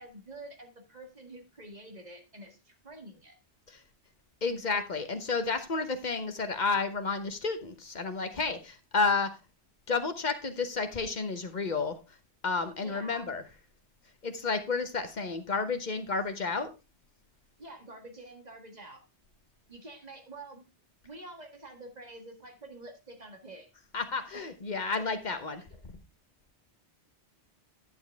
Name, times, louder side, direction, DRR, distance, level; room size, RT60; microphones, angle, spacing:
voice 1, 0.0-3.4 12.8-13.3 17.6-19.0 19.7-20.6 21.0-23.7 24.3-24.4 25.7-25.8, right 2 dB, 35° right, 3 dB, 1.8 m, -47 dB
voice 2, 4.4-9.3 9.9-12.0 12.4-13.4 14.2-16.7 23.9-25.6, left 4 dB, 45° left, 8 dB, 1.1 m, -31 dB
11.0 x 7.0 x 3.4 m, 0.27 s
omnidirectional pair, 1.2 m